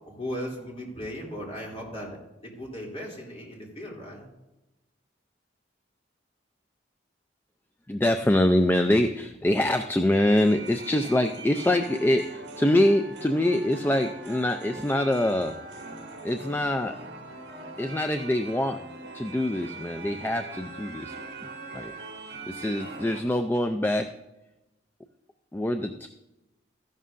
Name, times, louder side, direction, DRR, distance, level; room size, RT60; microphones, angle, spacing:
voice 1, 0.0-4.2, equal, 30° left, -3 dB, 2.7 m, -37 dB
voice 2, 7.9-15.5 16.2-17.0 17.8-18.8 19.1-21.1 21.7-21.9 22.5-24.1 25.5-26.1, left 1 dB, 10° left, 7 dB, 0.3 m, -24 dB
sound 1, 10.1-23.2, right 3 dB, 75° right, 1.6 m, -41 dB
14.0 x 11.0 x 2.5 m, 0.97 s
head